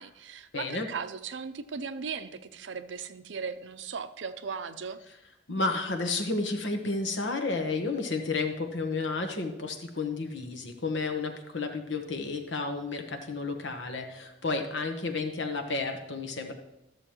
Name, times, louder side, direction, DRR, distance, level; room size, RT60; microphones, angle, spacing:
voice 1, 0.0-5.0, right 5 dB, 85° right, 11 dB, 0.6 m, -37 dB
voice 2, 0.5-0.9 5.5-16.5, left 3 dB, 80° left, 5 dB, 1.2 m, -31 dB
13.5 x 7.0 x 3.0 m, 0.91 s
head